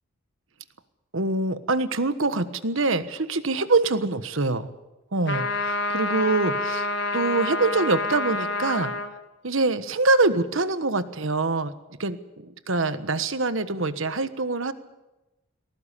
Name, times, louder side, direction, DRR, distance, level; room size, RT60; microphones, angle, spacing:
voice 1, 1.1-4.7 5.1-6.9 7.1-8.9 9.4-11.7 12.0-14.7, right 3 dB, 70° right, 12 dB, 1.3 m, -24 dB
sound 1, 5.3-9.1, left 2 dB, 55° left, 2.1 m, -28 dB
20.5 x 18.0 x 8.5 m, 1.0 s
head